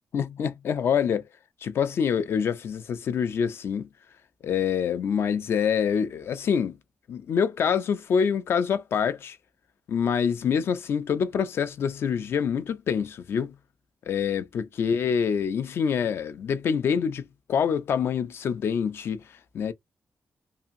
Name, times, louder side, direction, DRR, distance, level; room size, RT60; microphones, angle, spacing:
voice 1, 0.1-1.2 1.6-3.9 4.4-6.8 7.1-9.4 9.9-13.5 14.1-19.2 19.5-19.7, left 7 dB, 60° left, 0.4 m, -26 dB
2.8 x 2.5 x 2.5 m
wide cardioid pair, 175°, 5 cm